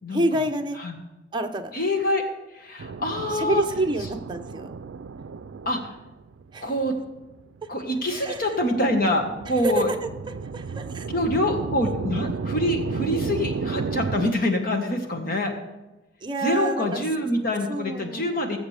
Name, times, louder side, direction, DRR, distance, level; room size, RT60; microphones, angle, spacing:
voice 1, 0.1-0.8 1.3-1.7 3.3-4.7 6.5-6.7 8.1-8.6 9.6-9.8 10.5-11.1 16.2-17.0 17.7-18.6, right 2 dB, 25° right, 4 dB, 0.8 m, -28 dB
voice 2, 1.7-2.2 2.5-3.6 5.6-5.9 6.6-6.9 7.7-9.9 11.1-15.5 16.4-18.6, left 1 dB, 50° left, 4 dB, 1.5 m, -25 dB
sound 1, 2.8-14.3, right 5 dB, 80° right, 0.4 m, -33 dB
21.0 x 7.3 x 3.4 m, 1.0 s
head